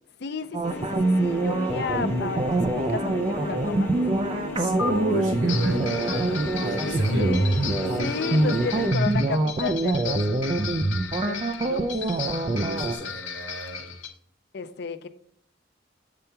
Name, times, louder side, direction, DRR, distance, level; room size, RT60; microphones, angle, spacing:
voice 1, 0.2-4.0 7.1-7.6 7.9-11.9 14.5-15.1, left 5 dB, 60° left, 0.5 m, -33 dB
sound 1, 0.5-12.9, right 2 dB, 30° right, 0.5 m, -25 dB
sound 2, 0.6-8.9, left 2 dB, 10° left, 2.2 m, -34 dB
voice 2, 4.6-7.4 12.4-13.9, right 1 dB, 90° right, 2.6 m, -33 dB
sound 3, 4.8-4.9 5.5-14.1, left 7 dB, 90° left, 1.0 m, -35 dB
6.9 x 3.4 x 5.7 m
head